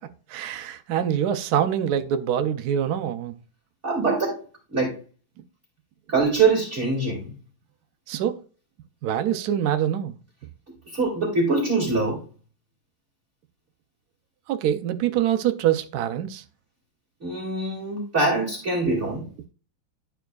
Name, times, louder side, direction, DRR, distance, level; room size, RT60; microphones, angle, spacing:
voice 1, 0.3-3.3 8.1-8.4 9.0-10.2 14.5-16.4, right 10 dB, 80° right, 0.8 m, -25 dB
voice 2, 3.8-4.4 4.7-4.9 6.1-7.3 10.9-12.2 17.2-19.3, right 3 dB, 35° right, 2.3 m, -23 dB
11.0 x 4.6 x 2.3 m
omnidirectional pair, 2.3 m